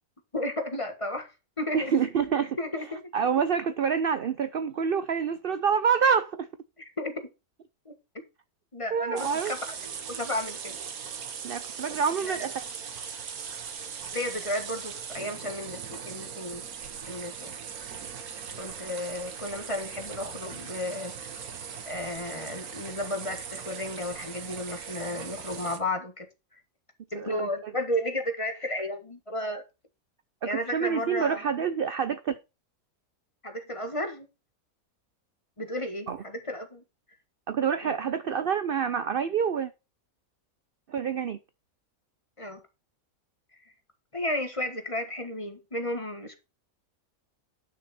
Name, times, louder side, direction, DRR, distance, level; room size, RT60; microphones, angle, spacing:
voice 1, 0.3-1.3 1.6-2.1 2.6-3.0 6.8-7.3 7.8-7.9 8.7-10.8 12.2-12.5 14.1-16.6 17.1-17.5 18.6-21.2 21.8-26.3 26.5-26.6 27.1-29.6 30.4-31.4 33.4-34.3 35.6-36.8 37.8-38.0 42.4-42.6 44.1-46.4, left 1 dB, 20° left, 1.6 m, -33 dB
voice 2, 1.7-2.6 3.1-6.5 8.9-9.5 11.4-12.5 25.1-25.2 27.1-27.5 30.4-32.4 36.1-36.2 37.5-39.7 40.9-41.4, right 7 dB, 55° right, 0.7 m, -27 dB
sound 1, 9.2-25.8, right 7 dB, 85° right, 1.7 m, -39 dB
10.5 x 6.3 x 4.2 m
omnidirectional pair, 1.5 m